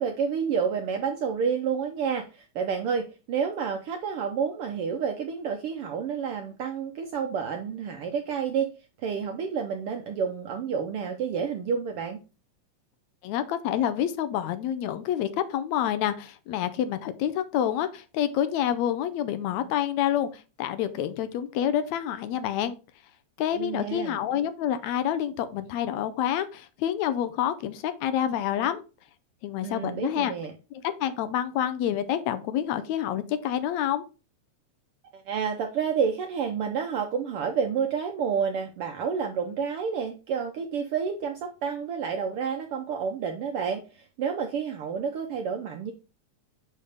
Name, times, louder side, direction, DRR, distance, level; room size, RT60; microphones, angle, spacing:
voice 1, 0.0-8.7 9.0-12.2 23.5-24.1 29.6-30.5 35.1-45.9, right 6 dB, 75° right, 4 dB, 1.3 m, -29 dB
voice 2, 13.2-22.8 23.4-28.8 29.4-30.3 30.7-34.1, left 10 dB, 75° left, 11 dB, 1.9 m, -28 dB
6.7 x 5.5 x 3.3 m, 0.32 s
omnidirectional pair, 3.3 m